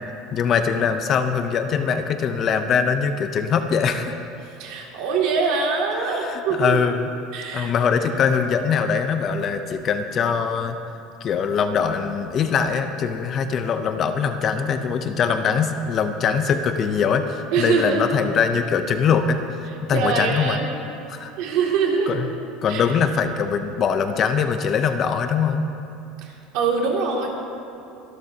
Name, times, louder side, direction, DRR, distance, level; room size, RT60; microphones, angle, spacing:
voice 1, 0.3-4.1 6.0-7.1 7.5-10.8 11.2-19.4 19.8-20.6 21.1-21.3 22.1-22.3 22.6-25.7, left 6 dB, 30° left, 8 dB, 0.5 m, -22 dB
voice 2, 4.4-6.8 7.3-7.7 17.5-18.1 19.9-20.7 21.4-22.2 22.7-22.8 26.2-27.3, right 5 dB, 60° right, 0 dB, 2.3 m, -23 dB
25.0 x 12.0 x 2.8 m, 2.7 s
cardioid pair, 175°, 0 cm